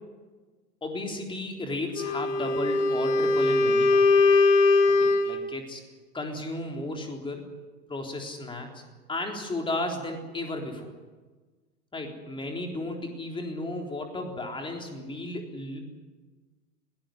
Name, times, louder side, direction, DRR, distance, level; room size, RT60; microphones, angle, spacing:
voice 1, 0.8-4.4 4.9-5.8 6.1-7.4 7.9-8.8 9.1-10.9 11.9-15.8, left 2 dB, 10° left, 2 dB, 3.8 m, -34 dB
Wind instrument woodwind instrument, 1.9-5.5, left 3 dB, 45° left, 2.2 m, -21 dB
20.5 x 19.0 x 9.9 m, 1.3 s
figure-of-eight pair, 95°, 48 cm